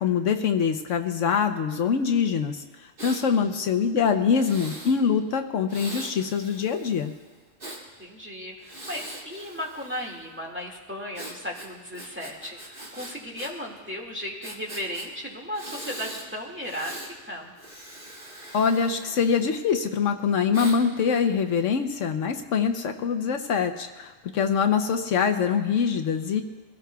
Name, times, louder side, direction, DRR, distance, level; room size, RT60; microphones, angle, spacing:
voice 1, 0.0-2.6 3.0-7.1 18.5-26.4, left 6 dB, 75° left, 6 dB, 1.1 m, -24 dB
Breathing, 3.0-3.3 4.3-5.0 5.7-7.8 8.6-10.2 11.1-13.5 13.8-13.9 14.4-15.1 15.5-16.3 16.6-17.1 17.6-19.7 20.5-20.8, right 1 dB, 45° right, 2.6 m, -41 dB
voice 2, 8.0-17.0 17.3-17.5, equal, 10° right, -2 dB, 1.9 m, -35 dB
24.5 x 16.5 x 2.3 m, 1.4 s
omnidirectional pair, 1.3 m